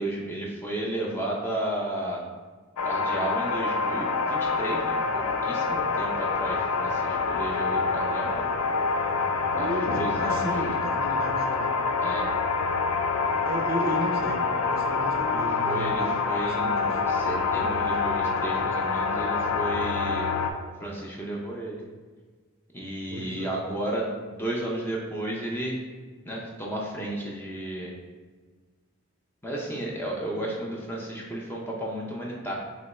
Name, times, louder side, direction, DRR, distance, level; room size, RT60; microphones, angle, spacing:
voice 1, 0.0-2.2 2.8-5.0 5.4-8.4 9.6-10.7 12.0-12.3 15.6-20.3 20.8-21.8 22.7-25.8 26.3-27.9 29.4-32.6, right 1 dB, 10° left, -3 dB, 0.5 m, -33 dB
sound 1, 2.8-20.5, left 4 dB, 85° left, 0.4 m, -26 dB
voice 2, 9.5-11.7 13.4-17.0 23.1-23.6, right 1 dB, 40° right, 1 dB, 0.5 m, -34 dB
3.4 x 2.9 x 4.1 m, 1.4 s
head